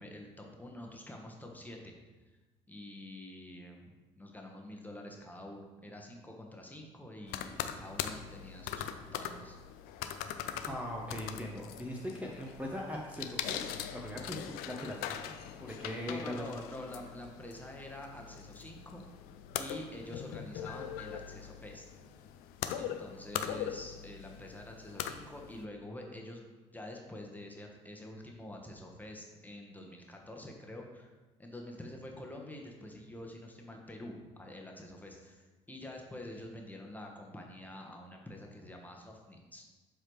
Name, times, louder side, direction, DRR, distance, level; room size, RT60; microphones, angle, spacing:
voice 1, 0.0-1.9 2.7-9.6 16.1-19.0 19.6-21.9 22.8-26.4 26.7-31.1 31.4-39.6, left 1 dB, 10° left, 0 dB, 1.3 m, -47 dB
sound 1, 7.3-25.6, left 9 dB, 70° left, 0.5 m, -41 dB
voice 2, 10.7-15.3 15.6-16.4, left 1 dB, 10° right, -2 dB, 1.1 m, -40 dB
7.6 x 4.9 x 3.2 m, 1.2 s
hypercardioid pair, 50°, 16 cm